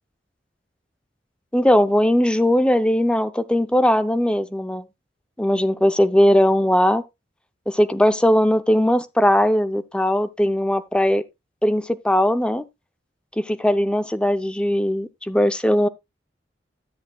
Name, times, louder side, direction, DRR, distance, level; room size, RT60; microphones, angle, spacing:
voice 1, 1.5-4.8 5.4-7.0 7.7-11.2 11.6-12.6 13.4-15.9, equal, 5° left, 0.6 m, -19 dB
13.0 x 8.2 x 2.3 m
head